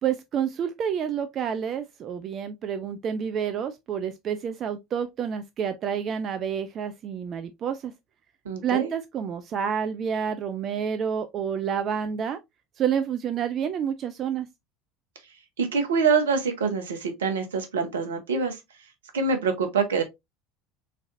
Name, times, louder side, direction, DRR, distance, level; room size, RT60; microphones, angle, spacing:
voice 1, 0.0-7.9 8.6-12.4 12.8-14.5, right 8 dB, 45° right, 0.4 m, -29 dB
voice 2, 8.4-8.9 15.6-18.6 19.1-20.0, right 5 dB, 75° right, 0.8 m, -25 dB
3.7 x 3.2 x 2.5 m
figure-of-eight pair, 70°, 0 cm